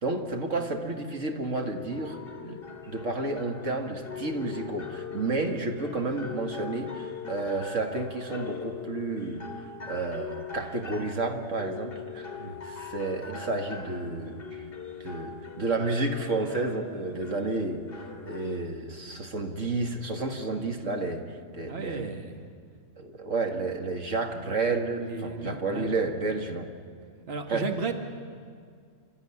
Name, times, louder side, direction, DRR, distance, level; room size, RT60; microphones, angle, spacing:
voice 1, 0.0-2.2 2.4-7.0 7.3-9.5 9.9-12.3 12.7-14.6 15.0-17.9 18.3-21.3 21.5-22.1 23.0-26.7 27.5-27.7, right 3 dB, 65° right, 4 dB, 2.2 m, -31 dB
sound 1, 1.6-18.6, left 5 dB, 45° left, 1.9 m, -41 dB
voice 2, 21.7-22.4 25.0-26.0 27.3-27.9, right 4 dB, 50° right, 4 dB, 1.8 m, -34 dB
29.0 x 13.0 x 9.9 m, 2.1 s
omnidirectional pair, 1.4 m